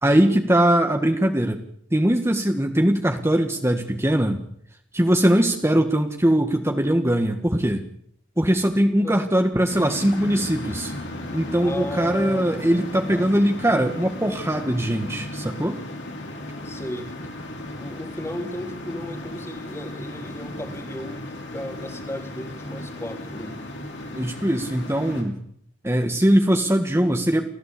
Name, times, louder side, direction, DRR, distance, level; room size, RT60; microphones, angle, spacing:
voice 1, 0.0-1.6 1.9-4.4 4.9-7.8 8.4-10.9 11.3-15.8 24.1-25.4 25.8-27.4, right 1 dB, 15° right, 4 dB, 1.6 m, -21 dB
sound 1, 9.7-25.2, left 1 dB, 70° left, 5.7 m, -35 dB
voice 2, 11.6-13.3 16.6-17.1 17.7-23.6, left 1 dB, 15° left, 6 dB, 2.9 m, -35 dB
29.0 x 15.0 x 8.5 m, 0.69 s
head